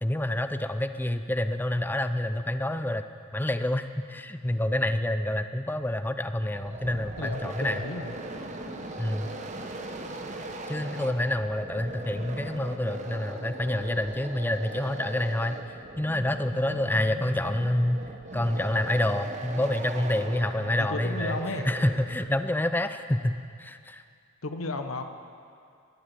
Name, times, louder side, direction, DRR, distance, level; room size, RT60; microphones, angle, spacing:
voice 1, 0.0-3.1 3.3-7.8 9.0-9.3 10.7-15.6 16.0-24.0, left 1 dB, 10° left, 9 dB, 0.5 m, -28 dB
sound 1, 6.4-22.5, right 2 dB, 35° right, 1.0 m, -39 dB
voice 2, 7.2-8.2 20.6-21.7 24.4-25.0, left 2 dB, 80° left, 7 dB, 1.0 m, -34 dB
21.0 x 8.1 x 7.5 m, 2.4 s
head